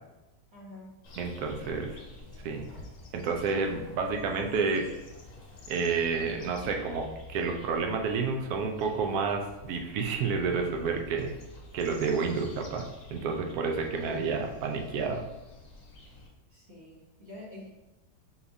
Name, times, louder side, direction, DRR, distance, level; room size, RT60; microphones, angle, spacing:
voice 1, 0.5-0.9 1.5-1.6 2.2-2.5 16.5-17.7, left 1 dB, 45° right, -5 dB, 1.0 m, -48 dB
sound 1, 1.0-16.3, left 2 dB, 55° left, 1.2 m, -49 dB
voice 2, 1.2-2.0 2.4-2.7 3.1-4.8 5.7-11.3 11.7-12.8 13.1-15.2, right 4 dB, 70° right, 3 dB, 1.0 m, -30 dB
4.8 x 3.4 x 2.6 m, 1.0 s
omnidirectional pair, 1.8 m